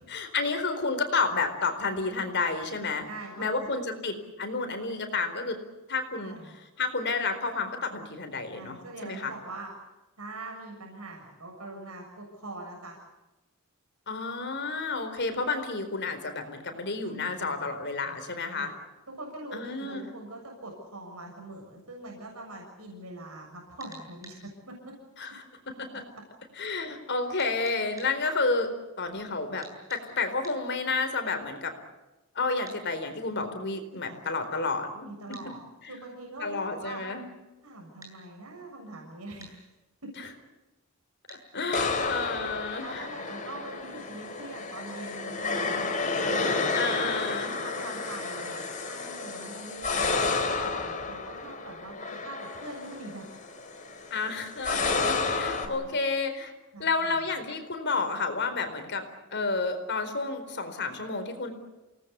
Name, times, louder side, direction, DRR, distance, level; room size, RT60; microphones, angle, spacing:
voice 1, 0.1-3.1 3.4-5.6 5.9-6.5 6.8-8.8 9.0-9.3 14.1-18.7 19.5-20.0 25.2-25.4 26.6-31.7 32.3-35.1 35.9-36.0 36.4-37.3 41.3-43.0 46.7-47.5 54.1-56.5 56.8-59.0 59.3-61.5, left 3 dB, 55° left, 7 dB, 4.3 m, -30 dB
voice 2, 3.0-3.7 6.1-6.5 8.5-9.7 10.2-13.0 17.1-17.8 18.0-18.2 18.5-18.7 19.1-24.9 34.1-34.2 35.0-35.6 35.9-37.0 37.6-39.6 40.0-40.1 42.7-45.9 46.2-46.8 47.6-53.3 55.6-56.0 56.7-57.1, right 2 dB, 90° right, 0 dB, 6.9 m, -43 dB
sound 1, 23.8-24.4 27.4-28.1 29.6-30.0 30.4-30.6 32.7-32.8 35.3-35.5 38.0-38.2 39.4-39.6 41.3-41.4 42.0-42.1, right 2 dB, 15° right, 7.8 m, -48 dB
sound 2, 41.7-55.7, left 4 dB, 35° left, 3.7 m, -31 dB
28.5 x 19.5 x 8.4 m, 1.1 s
head